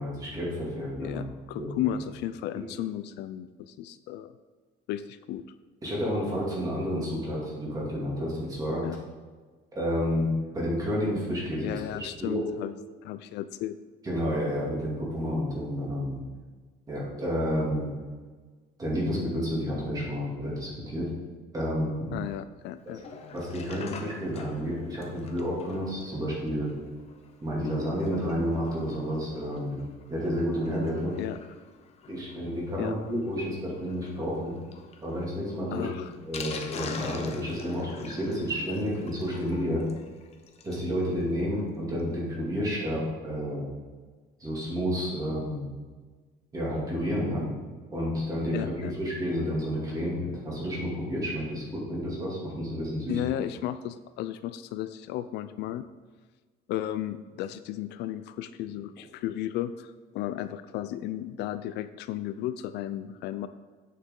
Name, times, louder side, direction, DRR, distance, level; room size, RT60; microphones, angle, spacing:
voice 1, 0.0-1.3 1.6-1.9 5.8-8.8 9.7-10.3 10.5-12.5 14.0-16.2 16.9-17.9 18.8-21.1 21.5-22.1 23.3-26.7 27.4-29.8 30.1-31.1 32.1-34.5 35.0-35.9 36.3-39.8 40.6-43.6 44.4-45.7 46.5-47.4 47.9-53.2, equal, 20° right, -5 dB, 2.6 m, -30 dB
voice 2, 1.0-4.3 4.9-5.5 8.8-9.0 11.6-12.7 13.0-13.8 22.1-23.0 31.2-31.4 32.8-32.9 35.7-36.1 48.5-48.9 53.1-55.9 56.7-63.5, left 12 dB, 70° left, 12 dB, 0.4 m, -34 dB
Sink (filling or washing), 22.9-40.9 41.3-41.4 41.5-41.6 42.0-42.1, left 5 dB, 35° left, 0.8 m, -45 dB
8.6 x 6.7 x 3.7 m, 1.4 s
cardioid pair, 165°, 18 cm